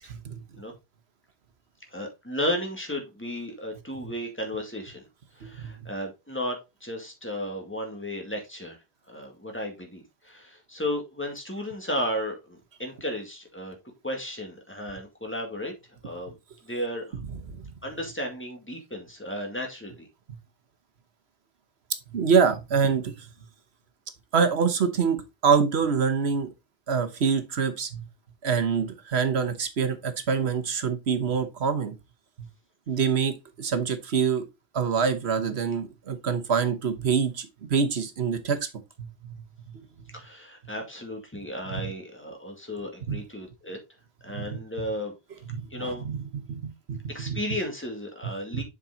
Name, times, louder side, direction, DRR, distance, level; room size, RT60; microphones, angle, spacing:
voice 1, 0.1-0.6 5.4-5.8 17.5-17.7 20.3-20.4 22.1-23.3 24.3-25.2 25.4-26.5 26.9-28.1 28.4-31.9 32.4-32.5 32.9-34.4 34.7-38.7 39.0-39.4 39.7-39.8 41.7-41.9 43.1-43.2 44.3-44.6 45.5-47.0 47.3-47.4 48.5-48.6, right 6 dB, 90° right, 1.3 m, -26 dB
voice 2, 1.9-5.1 5.4-8.8 9.1-13.8 14.0-15.7 16.0-16.4 16.6-17.2 17.8-20.1 40.1-43.8 44.2-45.1 45.7-46.0 47.1-48.6, equal, 10° left, 2.1 m, -34 dB
7.2 x 5.3 x 3.8 m
omnidirectional pair, 1.0 m